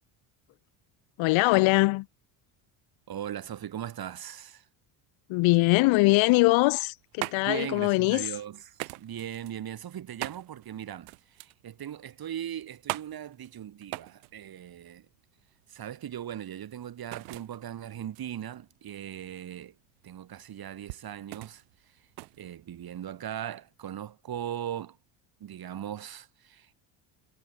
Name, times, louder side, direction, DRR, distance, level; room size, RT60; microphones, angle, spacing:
voice 1, 1.2-2.1 5.3-8.3, left 23 dB, 65° left, 0.9 m, -22 dB
voice 2, 3.1-4.7 7.4-15.1 15.7-19.8 20.0-22.1 22.4-25.0 25.4-26.7, right 10 dB, 45° right, 3.3 m, -39 dB
sound 1, 6.7-23.2, right 34 dB, 85° right, 1.0 m, -43 dB
supercardioid pair, 90°, 50 cm